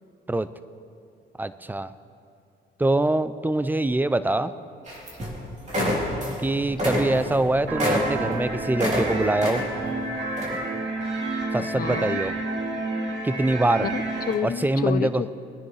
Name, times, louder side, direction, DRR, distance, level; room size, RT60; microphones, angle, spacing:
voice 1, 1.4-1.9 2.8-4.5 6.2-9.6 11.5-12.3 13.2-13.9 14.4-15.2, right 2 dB, 10° right, 14 dB, 0.4 m, -24 dB
sound 1, 4.9-5.4 5.7-6.4 6.7-9.1 9.4-9.9 10.4-10.6, equal, 35° right, 3.3 m, -27 dB
sound 2, 7.7-14.3, right 2 dB, 65° right, 2.3 m, -30 dB
voice 2, 11.6-12.2 13.8-15.3, left 8 dB, 50° left, 13 dB, 0.6 m, -30 dB
22.0 x 10.0 x 3.3 m, 2.5 s
cardioid pair, 90°, 20 cm